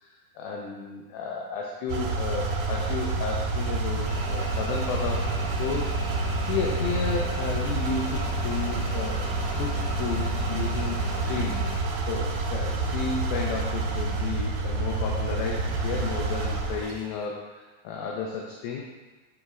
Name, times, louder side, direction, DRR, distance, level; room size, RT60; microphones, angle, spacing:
voice 1, 0.0-5.3 5.6-9.2 9.5-18.8, left 5 dB, 80° left, -1 dB, 2.3 m, -33 dB
sound 1, 1.9-17.0, right 3 dB, 85° right, 2.8 m, -28 dB
sound 2, 4.0-11.8, left 2 dB, 45° left, 2.6 m, -39 dB
10.0 x 4.0 x 2.4 m, 1.2 s
omnidirectional pair, 4.5 m